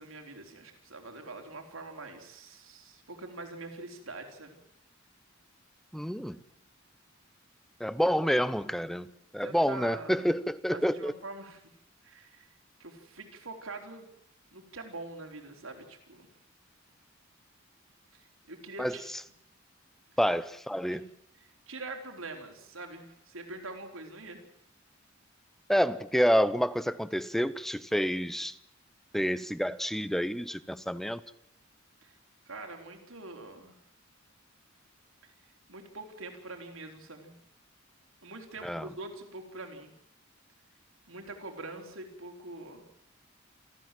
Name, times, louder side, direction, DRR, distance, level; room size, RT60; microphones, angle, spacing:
voice 1, 0.0-4.6 9.4-10.3 10.7-11.6 12.0-12.5 12.8-14.1 14.5-16.3 18.5-19.0 20.9-21.0 21.4-24.4 32.0-32.1 32.5-33.8 35.7-37.4 38.2-39.9 41.1-42.8, right 2 dB, 85° right, 3 dB, 3.9 m, -44 dB
voice 2, 5.9-6.4 7.8-9.1 9.3-11.1 18.8-18.9 20.2-21.1 25.7-28.5 29.1-31.2 38.6-38.9, equal, ahead, 16 dB, 0.7 m, -28 dB
27.5 x 13.5 x 7.6 m, 0.76 s
head